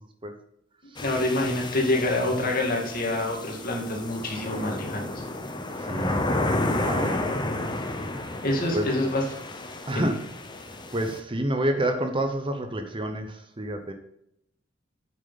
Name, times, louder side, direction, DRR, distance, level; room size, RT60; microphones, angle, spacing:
voice 1, 1.0-5.0 8.4-9.3 9.9-10.1, left 1 dB, 50° left, 0 dB, 2.4 m, -26 dB
sound 1, 1.0-11.2, left 2 dB, 25° left, 1.0 m, -31 dB
voice 2, 5.9-6.3 6.7-7.2 8.7-8.8 9.9-10.2 10.9-13.3 13.6-13.9, right 1 dB, 25° right, 6 dB, 0.9 m, -28 dB
8.7 x 7.2 x 4.1 m, 0.75 s
head